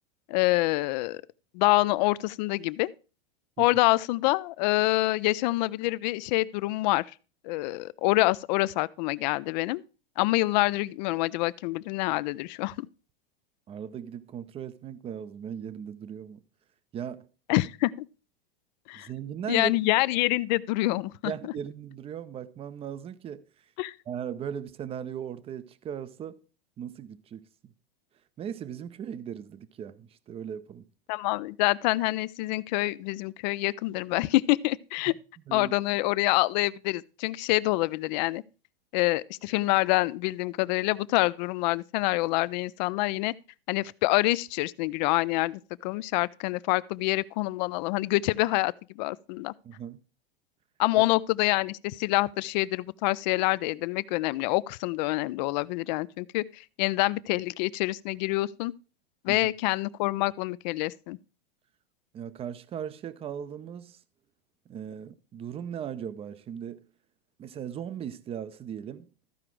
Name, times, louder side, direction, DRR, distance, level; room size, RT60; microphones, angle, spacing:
voice 1, 0.3-1.2 1.5-2.9 3.6-7.0 7.4-9.8 10.2-12.9 17.5-18.1 18.9-19.1 19.5-21.3 23.8-23.9 31.1-35.1 35.5-38.4 38.9-43.3 43.7-49.5 50.8-58.7 59.2-61.2, left 20 dB, 45° left, 0.4 m, -26 dB
voice 2, 13.7-16.4 16.9-17.3 19.0-19.8 21.2-23.4 24.1-26.4 26.8-27.7 28.4-30.9 35.5-35.7 49.6-50.0 51.0-51.1 59.3-59.5 62.1-64.0 64.7-66.8 67.4-69.1, right 8 dB, 20° right, 0.6 m, -38 dB
14.0 x 4.9 x 4.5 m
hypercardioid pair, 120°, 31 cm